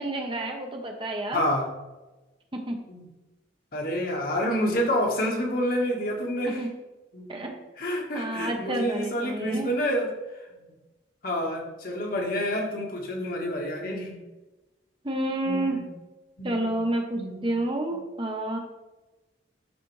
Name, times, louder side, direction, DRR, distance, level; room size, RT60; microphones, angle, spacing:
voice 1, 0.0-1.4 2.5-2.8 6.5-6.7 7.3-7.5 8.1-9.7 15.0-15.8 16.4-18.6, right 1 dB, 25° right, 3 dB, 0.9 m, -29 dB
voice 2, 1.3-1.7 2.9-3.1 3.7-6.6 7.1-7.4 7.8-10.1 11.2-14.2 15.4-15.8 16.4-16.8 17.1-17.5, equal, 50° left, 0 dB, 1.4 m, -28 dB
12.0 x 4.1 x 3.2 m, 1.1 s
head